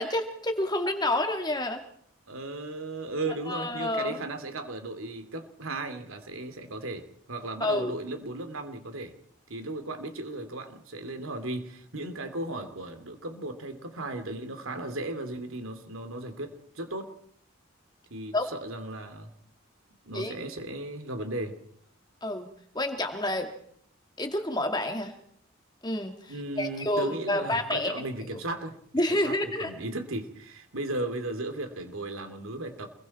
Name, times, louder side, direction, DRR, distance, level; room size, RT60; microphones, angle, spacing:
voice 1, 0.0-1.8 3.5-4.2 7.6-7.9 18.3-18.5 20.1-20.3 22.2-22.5 22.7-23.5 24.2-25.1 25.8-28.0 28.9-29.7, left 1 dB, 20° left, 5 dB, 2.1 m, -29 dB
voice 2, 2.3-9.1 9.5-17.1 18.1-19.3 20.0-21.6 26.3-28.8 29.2-32.9, right 2 dB, 90° right, 8 dB, 2.8 m, -36 dB
27.5 x 22.0 x 4.3 m, 0.66 s
head